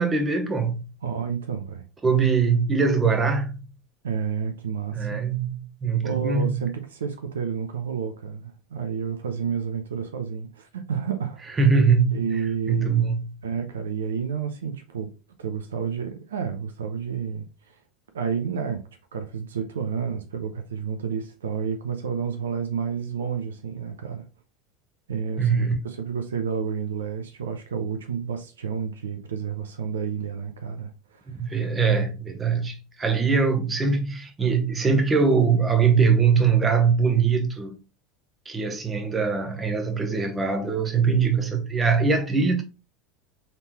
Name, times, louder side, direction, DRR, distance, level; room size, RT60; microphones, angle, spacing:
voice 1, 0.0-0.8 2.0-3.5 4.9-6.5 11.6-12.2 12.7-13.3 25.4-25.7 31.4-37.8 38.4-42.6, right 5 dB, 20° right, 1.0 m, -22 dB
voice 2, 1.0-1.9 4.0-5.2 6.0-11.4 12.1-13.1 13.4-15.1 15.4-17.8 18.1-24.3 25.1-25.6 25.8-31.2, right 6 dB, 75° right, 0.6 m, -30 dB
4.1 x 3.5 x 2.9 m
figure-of-eight pair, 75°, 0 cm